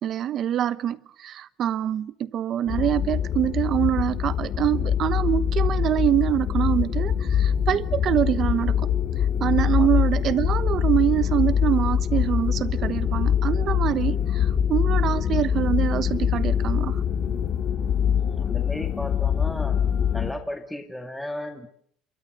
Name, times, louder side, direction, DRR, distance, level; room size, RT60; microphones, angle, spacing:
voice 1, 0.0-8.9 9.4-17.0, right 11 dB, 45° right, 1.1 m, -25 dB
sound 1, 2.7-20.3, left 8 dB, 40° left, 2.6 m, -24 dB
voice 2, 18.2-19.8 20.1-21.7, left 1 dB, 5° left, 2.2 m, -35 dB
27.5 x 23.0 x 6.6 m
cardioid pair, 135°, 0 cm